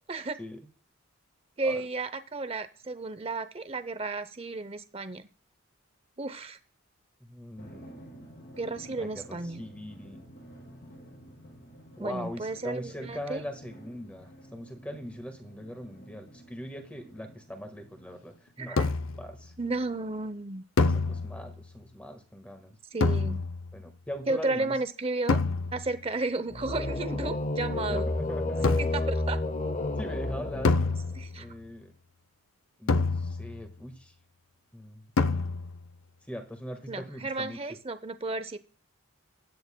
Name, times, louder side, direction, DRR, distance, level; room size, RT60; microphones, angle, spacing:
voice 1, 1.6-5.3 6.2-6.6 8.6-9.6 12.0-13.4 18.6-18.9 19.6-20.6 22.9-23.4 24.3-25.4 25.7-28.1 28.5-29.4 31.2-31.5 36.9-38.6, right 3 dB, 25° right, 12 dB, 0.6 m, -33 dB
voice 2, 7.2-8.4 9.0-10.2 12.0-19.5 20.9-22.8 23.7-24.8 27.7-28.7 30.0-30.7 31.4-31.9 32.8-34.1 34.7-35.0 36.3-37.6, equal, 5° left, 5 dB, 1.5 m, -41 dB
Drum, 7.6-18.6, right 1 dB, 50° left, 6.9 m, -51 dB
sound 1, 18.8-19.3 20.8-21.6 23.0-23.8 25.3-26.0 28.6-29.2 30.6-31.5 32.9-33.7 35.2-35.9, left 3 dB, 75° left, 0.6 m, -27 dB
sound 2, 26.5-31.2, left 2 dB, 30° left, 0.7 m, -31 dB
16.0 x 10.5 x 2.2 m, 0.40 s
head